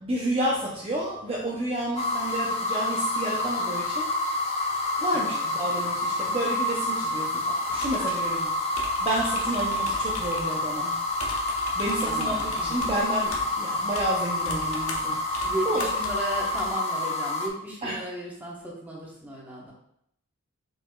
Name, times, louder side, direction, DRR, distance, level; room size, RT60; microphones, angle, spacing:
voice 1, 0.0-4.1 5.0-8.5 9.0-11.0 11.8-15.2 15.7-15.9 17.8-18.0, right 1 dB, 25° right, -5 dB, 0.6 m, -30 dB
sound 1, 2.0-17.5, left 1 dB, 30° left, 0.5 m, -28 dB
voice 2, 5.1-5.4 8.2-8.5 12.0-12.8 15.4-19.7, right 1 dB, 10° right, -4 dB, 1.1 m, -35 dB
sound 2, 7.7-16.7, left 3 dB, 65° left, 0.7 m, -40 dB
4.7 x 4.1 x 2.4 m, 0.72 s
head